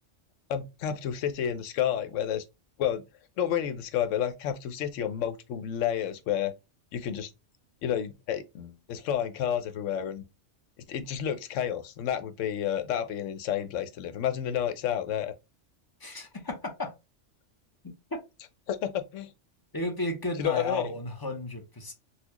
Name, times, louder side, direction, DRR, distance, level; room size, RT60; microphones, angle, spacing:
voice 1, 0.5-2.4 2.8-3.0 3.4-6.5 6.9-7.3 7.8-10.2 10.9-15.3 18.7-19.3 20.4-20.9, left 9 dB, 85° left, 0.9 m, -30 dB
voice 2, 16.0-16.9 18.1-18.2 19.7-21.9, left 2 dB, 25° left, 0.6 m, -33 dB
4.0 x 2.3 x 2.8 m
omnidirectional pair, 1.2 m